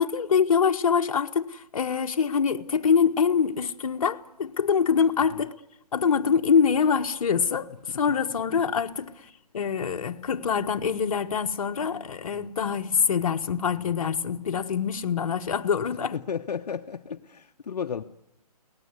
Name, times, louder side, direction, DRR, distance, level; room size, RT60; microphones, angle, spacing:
voice 1, 0.0-5.5 5.9-9.1 9.5-16.1, left 6 dB, 60° left, 1.3 m, -24 dB
voice 2, 16.1-18.0, left 7 dB, 75° left, 0.9 m, -34 dB
23.5 x 18.5 x 9.5 m
hypercardioid pair, 165°, 20 cm